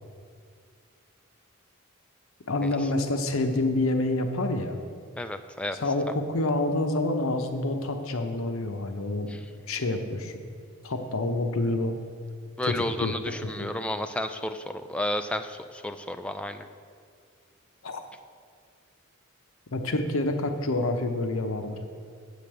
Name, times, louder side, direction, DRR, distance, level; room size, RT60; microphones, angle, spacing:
voice 1, 2.5-4.8 5.8-9.3 9.7-10.4 10.8-11.9 12.6-13.1 13.6-13.7 17.8-18.0 19.7-21.8, left 2 dB, 70° left, 6 dB, 0.8 m, -27 dB
voice 2, 5.2-5.8 9.3-9.4 12.6-16.7, left 1 dB, 5° left, 7 dB, 0.3 m, -32 dB
7.9 x 5.1 x 7.5 m, 2.1 s
head